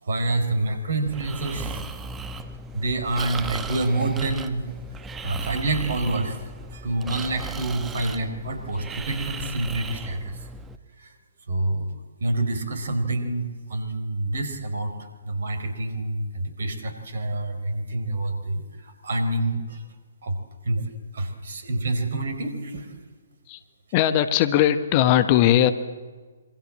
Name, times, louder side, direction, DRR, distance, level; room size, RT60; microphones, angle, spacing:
voice 1, 0.0-1.8 2.7-4.7 5.2-6.4 6.7-10.4 11.0-11.1 11.5-11.9 12.2-19.8 20.2-20.4 20.6-20.8 21.1-22.9, right 2 dB, 55° right, 9 dB, 4.7 m, -27 dB
Breathing, 1.1-10.8, right 3 dB, 10° right, 1.3 m, -36 dB
voice 2, 23.9-25.7, left 12 dB, 30° left, 11 dB, 1.4 m, -19 dB
27.0 x 24.5 x 7.6 m, 1.4 s
figure-of-eight pair, 125°, 0 cm